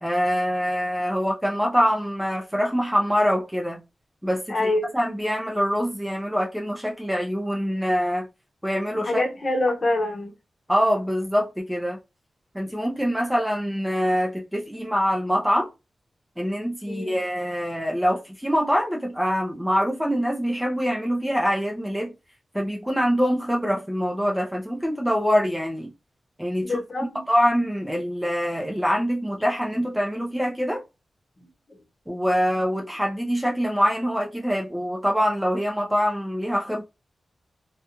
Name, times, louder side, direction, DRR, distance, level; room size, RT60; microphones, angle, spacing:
voice 1, 0.0-3.8 4.2-8.3 8.6-9.2 10.7-12.0 12.5-15.7 16.4-22.1 22.5-25.9 26.4-26.7 27.3-30.8 32.1-36.8, equal, 5° right, 0.5 m, -24 dB
voice 2, 4.5-4.9 9.1-10.3 16.9-17.2 26.6-27.2 31.7-31.8, left 2 dB, 40° left, 0.8 m, -25 dB
2.4 x 2.2 x 2.9 m
wide cardioid pair, 120°, 0 cm